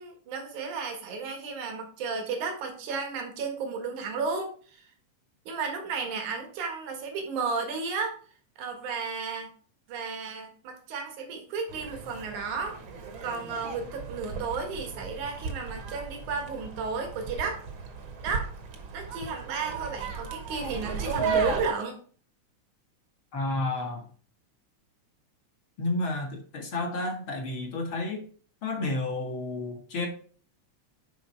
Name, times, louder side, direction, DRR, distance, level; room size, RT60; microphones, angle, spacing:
voice 1, 0.0-4.8 5.5-8.2 8.6-9.5 9.9-12.8 13.2-17.6 18.2-18.5 18.9-22.0, right 4 dB, 80° right, 4 dB, 3.1 m, -33 dB
sound 1, 11.7-21.7, right 5 dB, 50° right, 1.7 m, -35 dB
voice 2, 23.3-24.0 25.8-28.2 28.6-30.1, left 2 dB, 45° left, 2 dB, 2.4 m, -31 dB
10.5 x 4.6 x 4.4 m, 0.43 s
omnidirectional pair, 3.4 m